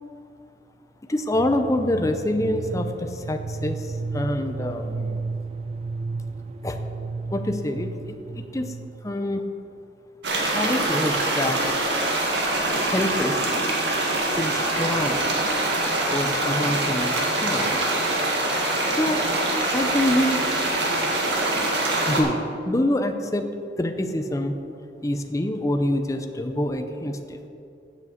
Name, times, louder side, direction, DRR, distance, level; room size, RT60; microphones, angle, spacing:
voice 1, 1.1-5.2 6.6-6.8 7.3-8.7 9.0-9.5 10.5-11.8 12.8-13.5 14.4-15.3 16.1-17.7 19.0-19.3 19.7-20.5 22.1-23.5 23.8-24.6 25.0-27.5, left 1 dB, 20° left, 6 dB, 0.6 m, -26 dB
sound 1, 1.3-9.1, right 3 dB, 35° right, 0.3 m, -33 dB
sound 2, 10.2-22.2, right 2 dB, 80° right, 1.8 m, -24 dB
8.3 x 7.3 x 7.8 m, 2.6 s
head